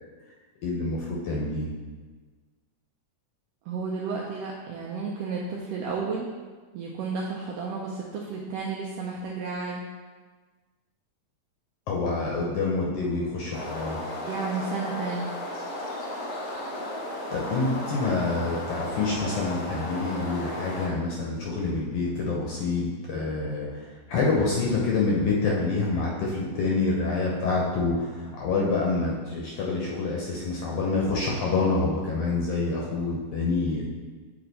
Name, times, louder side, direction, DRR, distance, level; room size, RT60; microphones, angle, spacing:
voice 1, 0.6-1.7 11.9-14.0 17.3-33.8, left 3 dB, 70° left, -3 dB, 1.5 m, -27 dB
voice 2, 3.7-6.3 6.7-9.8 14.2-15.3, right 4 dB, 80° right, -2 dB, 1.4 m, -32 dB
sound 1, 13.5-20.9, left 1 dB, 55° left, 1.4 m, -34 dB
7.8 x 3.3 x 3.9 m, 1.4 s
omnidirectional pair, 3.4 m